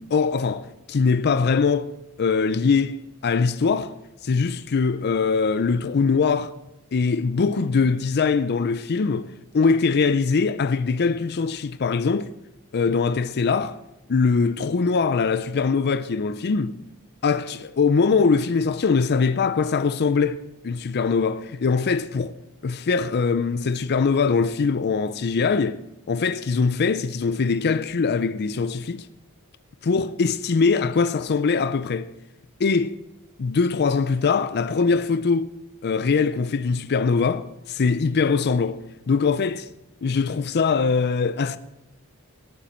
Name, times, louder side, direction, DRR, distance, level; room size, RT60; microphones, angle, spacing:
voice 1, 0.0-1.9 2.2-4.0 4.2-6.5 6.9-12.3 12.7-13.8 14.1-16.8 17.2-22.3 22.6-25.8 26.1-29.1 29.8-32.1 32.6-33.0 33.4-35.5 35.8-39.7 40.0-41.6, left 5 dB, 50° left, 0.5 m, -22 dB
18.0 x 9.2 x 4.4 m
head